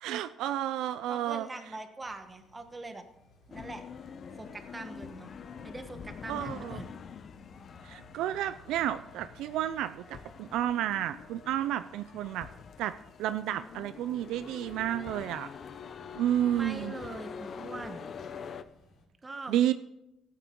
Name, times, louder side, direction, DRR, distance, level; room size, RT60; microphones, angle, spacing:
voice 1, 0.0-1.5 6.3-6.8 7.8-12.5 12.8-12.9 13.2-15.5 16.2-16.9 19.5-19.7, right 12 dB, 90° right, 12 dB, 0.4 m, -31 dB
voice 2, 1.1-3.0 3.5-3.8 4.3-5.3 5.6-6.9 16.5-18.1 19.2-19.6, right 2 dB, 20° right, 7 dB, 1.3 m, -42 dB
sound 1, 2.0-19.1, left 2 dB, 60° left, 3.4 m, -58 dB
sound 2, 3.5-18.6, left 6 dB, 45° left, 0.6 m, -45 dB
16.0 x 9.1 x 3.8 m, 0.87 s
cardioid pair, 130°, 0 cm